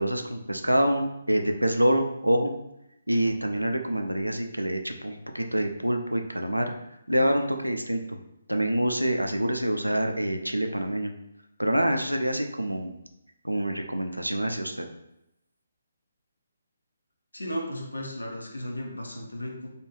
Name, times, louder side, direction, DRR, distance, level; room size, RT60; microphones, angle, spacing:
voice 1, 0.0-2.5 3.1-6.7 7.1-8.2 8.5-11.1 11.6-13.0 13.4-14.8, right 1 dB, 90° right, 5 dB, 0.3 m, -26 dB
voice 2, 17.3-19.7, equal, 80° left, -1 dB, 0.6 m, -35 dB
2.4 x 2.3 x 3.1 m, 0.86 s
figure-of-eight pair, 140°, 0 cm